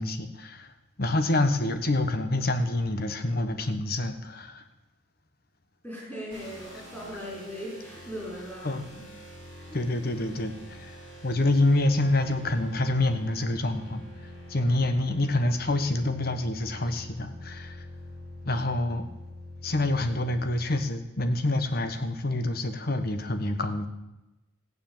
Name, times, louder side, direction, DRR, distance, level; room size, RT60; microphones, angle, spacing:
voice 1, 0.0-4.6 8.6-8.9 9.7-17.9 18.4-19.0 19.6-23.9, left 2 dB, 50° left, 8 dB, 1.2 m, -27 dB
voice 2, 5.8-9.0 9.5-9.8, equal, 10° left, -5 dB, 5.5 m, -39 dB
sound 1, 6.3-20.6, left 1 dB, 75° left, 6.9 m, -45 dB
15.0 x 9.5 x 7.3 m, 0.96 s
head